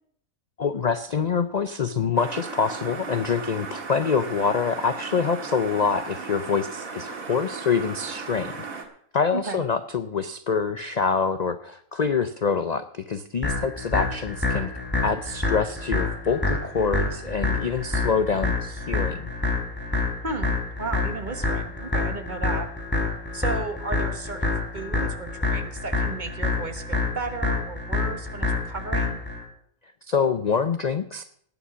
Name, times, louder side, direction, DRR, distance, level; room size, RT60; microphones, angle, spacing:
voice 1, 0.6-8.7 9.1-14.7 15.0-19.3 30.1-31.2, left 5 dB, 45° left, 10 dB, 0.5 m, -25 dB
sound 1, 2.2-8.8, right 4 dB, 90° right, 2.1 m, -36 dB
voice 2, 9.3-9.6 20.2-22.7 23.3-29.2, right 3 dB, 35° right, 7 dB, 1.3 m, -34 dB
sound 2, 13.4-29.4, left 3 dB, 5° left, 4.6 m, -27 dB
18.5 x 7.0 x 6.2 m, 0.66 s
omnidirectional pair, 1.4 m